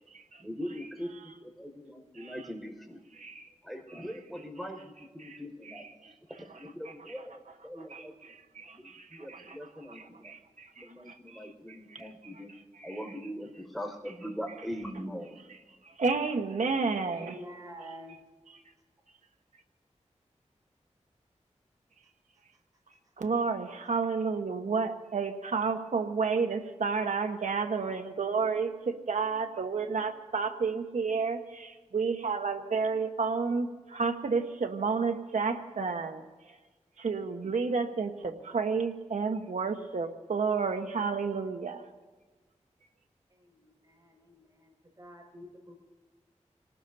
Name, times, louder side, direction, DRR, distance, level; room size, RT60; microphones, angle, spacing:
voice 1, 0.4-3.0 3.6-5.9 6.4-8.3 8.7-10.3 10.8-12.5 12.8-15.4, equal, ahead, 2 dB, 5.3 m, -41 dB
voice 2, 3.2-3.5 5.2-5.4 5.7-6.1 7.9-8.0 8.3-9.6 9.9-11.5 11.9-12.1 12.8-13.0 16.0-17.4 23.2-36.2 37.0-41.8, right 4 dB, 80° right, 6 dB, 1.3 m, -31 dB
voice 3, 17.0-18.2 43.4-45.8, equal, 30° right, 1 dB, 5.9 m, -48 dB
28.0 x 18.5 x 2.8 m, 1.3 s
cardioid pair, 45°, 13 cm